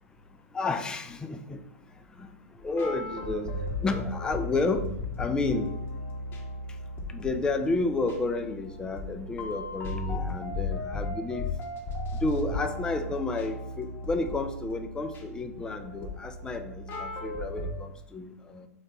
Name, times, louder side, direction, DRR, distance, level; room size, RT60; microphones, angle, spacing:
voice 1, 0.5-1.6 2.2-2.3 2.6-4.9 5.2-5.7 7.1-11.5 12.2-18.7, left 3 dB, 10° left, 8 dB, 0.3 m, -31 dB
sound 1, 2.6-17.7, left 2 dB, 25° left, 0.8 m, -36 dB
3.9 x 3.2 x 3.9 m, 0.80 s
figure-of-eight pair, 100°, 8 cm